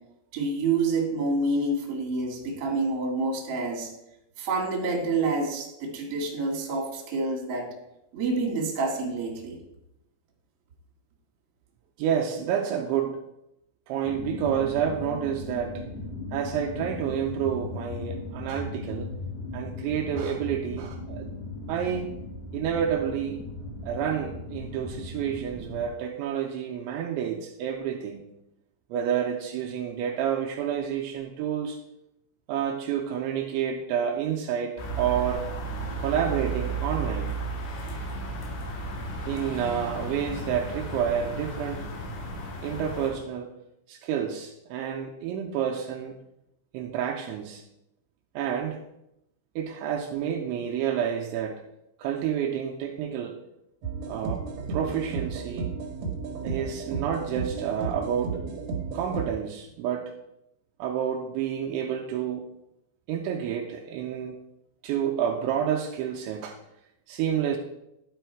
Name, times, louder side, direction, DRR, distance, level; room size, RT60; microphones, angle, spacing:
voice 1, 0.3-3.9 4.4-7.7 8.1-9.6, right 3 dB, 45° right, -1 dB, 2.0 m, -28 dB
voice 2, 12.0-13.2 13.9-15.8 16.3-19.1 19.5-21.3 21.7-22.2 22.5-23.4 23.8-28.3 28.9-31.8 32.5-35.5 36.0-37.4 37.9-38.0 39.3-41.9 42.6-43.5 43.9-46.2 46.7-47.6 48.4-48.8 49.6-51.6 52.0-53.4 54.1-55.7 56.4-58.4 58.9-60.1 60.8-62.4 63.1-64.4 64.8-66.6 67.1-67.6, right 8 dB, 80° right, 1 dB, 2.9 m, -29 dB
sound 1, 14.0-25.9, left 2 dB, 50° left, 2.3 m, -37 dB
sound 2, 34.8-43.1, right 3 dB, 70° left, 3.8 m, -34 dB
sound 3, 53.8-59.3, right 5 dB, 65° right, 2.2 m, -33 dB
11.5 x 5.5 x 4.5 m, 0.85 s
omnidirectional pair, 5.6 m